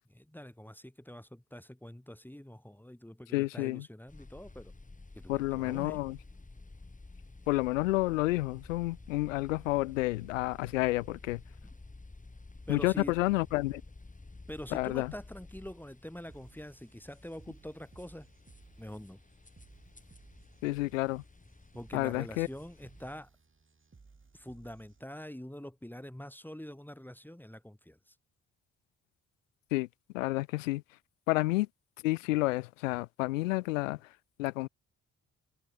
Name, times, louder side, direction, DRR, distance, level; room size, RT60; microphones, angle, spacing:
voice 1, 0.0-4.7 5.2-6.0 12.7-13.2 14.5-18.3 18.8-19.2 21.7-23.3 24.3-28.1, equal, 5° left, 3.6 m, -45 dB
voice 2, 3.3-3.9 5.3-6.2 7.5-11.4 12.7-13.8 14.7-15.1 20.6-21.2 21.9-22.5 29.7-29.9 30.1-30.8 31.3-31.7 32.0-34.0 34.4-34.7, left 20 dB, 90° left, 0.9 m, -30 dB
sound 1, 4.1-23.1, left 3 dB, 20° left, 4.4 m, -52 dB
sound 2, 16.3-25.3, right 4 dB, 35° right, 7.0 m, -60 dB
hypercardioid pair, 45°, 37 cm